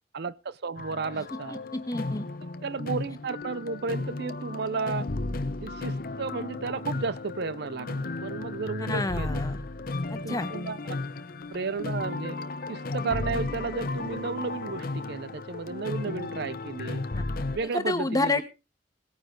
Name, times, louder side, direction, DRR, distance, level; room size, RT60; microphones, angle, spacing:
voice 1, 0.1-1.6 2.4-5.1 5.6-9.4 10.2-11.0 11.5-12.4 12.7-17.1 17.5-18.4, right 4 dB, 60° right, 18 dB, 0.6 m, -33 dB
sound 1, 0.8-17.6, left 2 dB, 50° left, 0.8 m, -34 dB
voice 2, 1.5-2.3 8.9-9.6 10.1-10.5 17.1-17.2 17.7-18.4, left 2 dB, 20° left, 9 dB, 1.4 m, -29 dB
18.0 x 9.4 x 3.9 m, 0.29 s
head